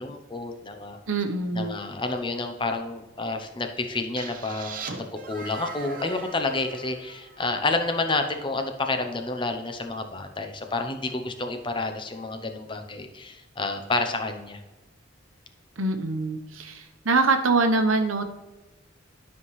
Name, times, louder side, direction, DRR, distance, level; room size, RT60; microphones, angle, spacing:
voice 1, 0.0-1.0 1.5-14.6, left 3 dB, 25° left, 6 dB, 0.7 m, -29 dB
voice 2, 1.1-1.8 15.8-18.2, right 3 dB, 90° right, 7 dB, 1.0 m, -24 dB
sound 1, 4.1-7.9, right 4 dB, 45° right, 0.8 m, -40 dB
12.0 x 5.5 x 3.2 m, 1.1 s
head